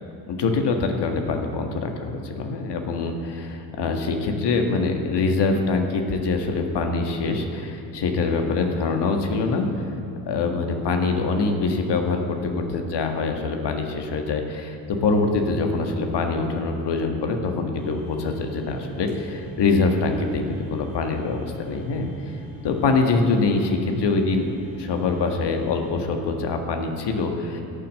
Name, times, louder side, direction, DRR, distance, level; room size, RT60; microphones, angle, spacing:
voice 1, 0.3-9.7 10.2-22.1 22.6-24.5 24.8-27.6, left 3 dB, 55° left, 4 dB, 1.7 m, -24 dB
sound 1, 17.7-25.9, right 1 dB, 80° left, 3.4 m, -43 dB
14.0 x 6.0 x 7.6 m, 2.6 s
hypercardioid pair, 60°, 47 cm